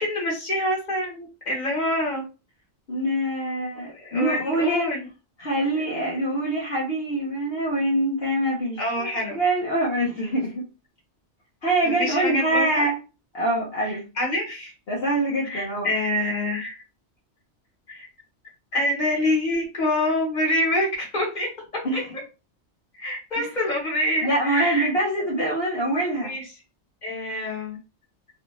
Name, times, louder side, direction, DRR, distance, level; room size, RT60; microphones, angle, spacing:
voice 1, 0.0-2.2 3.9-5.0 5.7-5.8 8.8-9.4 11.8-12.9 14.2-14.7 15.4-16.8 17.9-18.1 18.7-21.5 21.9-22.0 23.0-24.9 26.2-26.4 27.0-27.8, left 1 dB, 40° left, -3 dB, 1.7 m, -26 dB
voice 2, 2.9-4.9 5.4-10.6 11.6-13.0 13.3-14.0 14.9-15.9 21.8-22.0 23.4-23.5 24.2-26.3, right 1 dB, 60° left, -6 dB, 1.3 m, -24 dB
3.2 x 2.5 x 3.1 m, 0.30 s
omnidirectional pair, 1.2 m